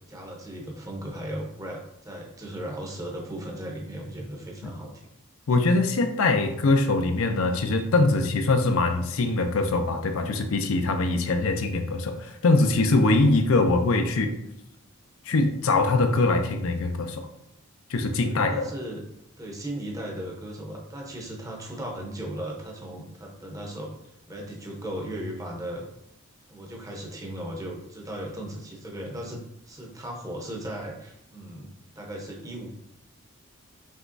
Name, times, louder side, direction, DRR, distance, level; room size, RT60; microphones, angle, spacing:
voice 1, 0.1-4.9 18.2-19.0 19.4-23.9 24.3-25.9 26.5-29.4 29.7-31.7 32.0-32.7, right 1 dB, 15° right, -1 dB, 0.7 m, -36 dB
voice 2, 5.5-14.3 15.3-17.3 17.9-18.5, left 3 dB, 70° left, 5 dB, 0.5 m, -22 dB
5.5 x 3.0 x 2.5 m, 0.79 s
head